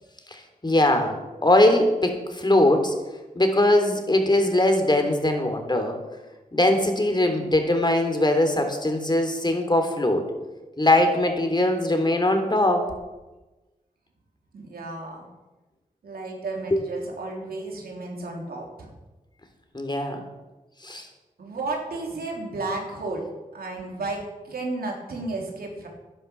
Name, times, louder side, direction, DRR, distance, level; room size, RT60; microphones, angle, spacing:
voice 1, 0.3-2.9 3.3-6.0 6.5-10.3 10.8-12.9 16.7-16.8 19.7-20.2 20.8-21.1, left 1 dB, 30° left, 5 dB, 3.1 m, -21 dB
voice 2, 14.5-15.3 16.0-18.9 21.4-25.9, right 2 dB, 90° right, 0 dB, 3.2 m, -33 dB
11.0 x 10.5 x 6.8 m, 1.1 s
cardioid pair, 45°, 15 cm